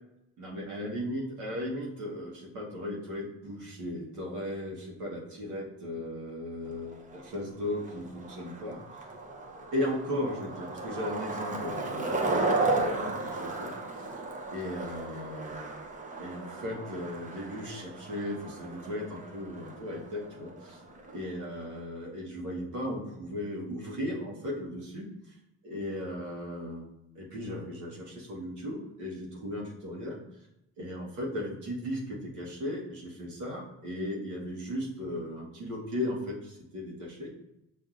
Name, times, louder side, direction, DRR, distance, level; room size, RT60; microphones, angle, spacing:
voice 1, 0.4-9.1 9.7-14.0 14.5-15.8 16.1-20.8 21.1-25.1 25.6-26.9 27.1-30.2 30.8-37.3, left 1 dB, 75° right, -4 dB, 1.1 m, -36 dB
Skateboard, 6.7-21.8, right 2 dB, 25° right, 0.6 m, -35 dB
5.7 x 2.6 x 2.5 m, 0.87 s
cardioid pair, 90°, 30 cm